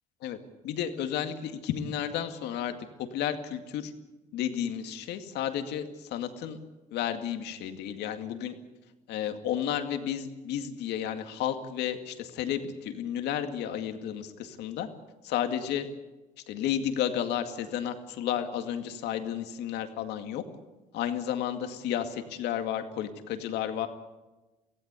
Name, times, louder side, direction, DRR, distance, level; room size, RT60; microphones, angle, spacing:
voice 1, 0.6-2.7 3.1-3.9 4.3-6.6 6.9-8.5 9.1-14.9 15.2-15.9 16.5-20.4 20.9-23.9, left 10 dB, 85° left, 7 dB, 2.1 m, -32 dB
24.0 x 16.0 x 8.3 m, 1.1 s
cardioid pair, 110°, 17 cm